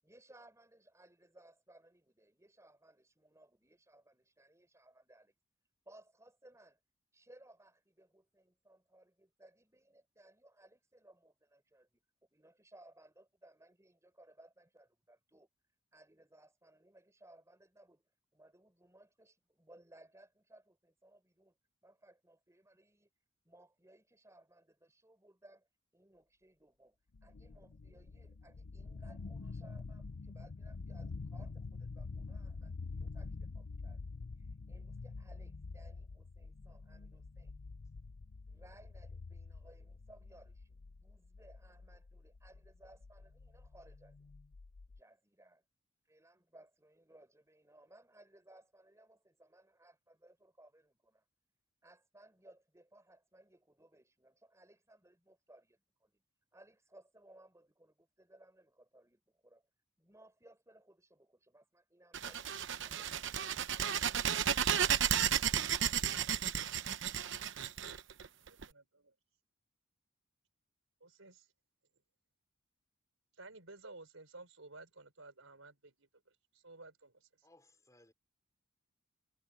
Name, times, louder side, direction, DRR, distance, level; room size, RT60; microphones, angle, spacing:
voice 1, 0.0-5.3 5.9-6.8 7.1-15.5 15.9-21.6 21.8-23.1 23.4-25.7 25.9-34.0 34.4-37.5 38.5-44.4 45.0-45.6 46.0-51.2 51.8-56.2 56.5-59.7 60.0-63.5, right 1 dB, 15° right, 5.4 m, -63 dB
sound 1, 27.1-45.0, left 4 dB, 70° left, 0.6 m, -47 dB
sound 2, 62.1-68.6, right 9 dB, 65° right, 0.9 m, -33 dB
voice 2, 68.5-69.1 71.0-71.5 73.4-77.5, right 2 dB, 80° right, 4.5 m, -55 dB
voice 3, 77.4-78.1, left 1 dB, 15° left, 4.8 m, -64 dB
head